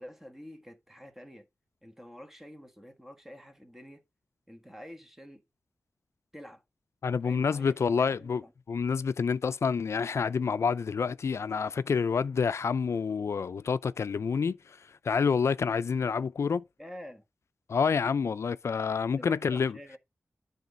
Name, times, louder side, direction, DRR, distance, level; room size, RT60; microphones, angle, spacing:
voice 1, 0.0-1.5 1.8-4.0 4.5-5.4 6.3-6.6 7.2-8.5 16.8-17.2 19.2-20.0, equal, 5° right, 1.5 m, -47 dB
voice 2, 7.0-8.4 8.7-16.6 17.7-19.8, left 5 dB, 75° left, 0.4 m, -28 dB
11.0 x 3.9 x 5.2 m
wide cardioid pair, 80°, 5 cm